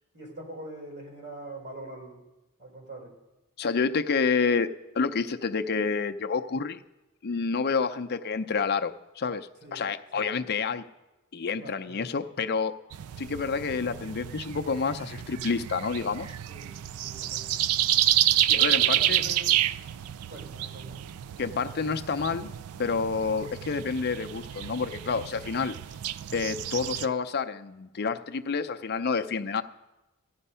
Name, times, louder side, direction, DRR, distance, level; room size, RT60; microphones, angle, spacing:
voice 1, 0.1-2.3 2.6-3.1 9.6-9.8 10.1-10.3 11.6-12.0 16.5-16.8 17.0-17.6 18.5-19.5 20.3-21.0, right 1 dB, 55° right, 1 dB, 3.9 m, -43 dB
voice 2, 3.6-4.7 4.9-6.8 7.2-10.8 11.3-12.7 13.2-16.3 18.5-19.2 21.4-22.5 22.8-25.8 26.3-29.6, left 5 dB, 45° left, 8 dB, 0.5 m, -29 dB
sound 1, 12.9-27.1, right 12 dB, 70° right, 0.4 m, -29 dB
14.5 x 10.5 x 5.6 m, 1.0 s
head